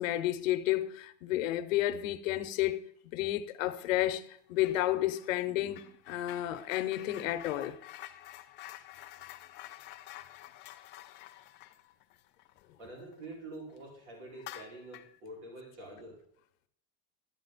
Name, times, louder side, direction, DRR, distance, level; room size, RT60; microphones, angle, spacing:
voice 1, 0.0-2.8 3.0-7.8, left 14 dB, 90° left, 0.9 m, -31 dB
sound 1, 4.6-4.9 5.2-13.3 13.7-13.8 14.3-15.2, left 15 dB, 30° left, 0.5 m, -49 dB
voice 2, 12.8-16.2, right 2 dB, 50° right, 5.0 m, -46 dB
11.0 x 8.3 x 4.0 m
supercardioid pair, 160°, 38 cm